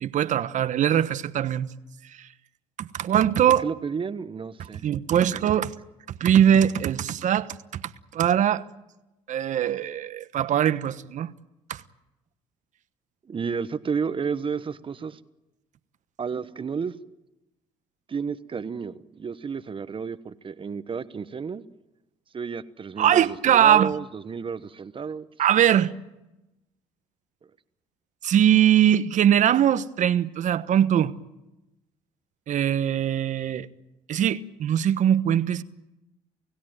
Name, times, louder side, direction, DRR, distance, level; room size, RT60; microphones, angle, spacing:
voice 1, 0.0-1.7 2.2-2.3 2.8-3.7 4.6-5.7 6.2-8.6 9.3-11.3 11.7-11.8 23.0-23.9 25.4-25.9 28.2-31.1 32.5-33.7 34.1-35.6, right 10 dB, 55° right, 1.2 m, -21 dB
voice 2, 3.6-5.3 13.3-15.2 16.2-16.9 18.1-21.6 22.3-25.3, right 6 dB, 35° right, 1.2 m, -32 dB
29.5 x 16.0 x 9.2 m
supercardioid pair, 70°, 15 cm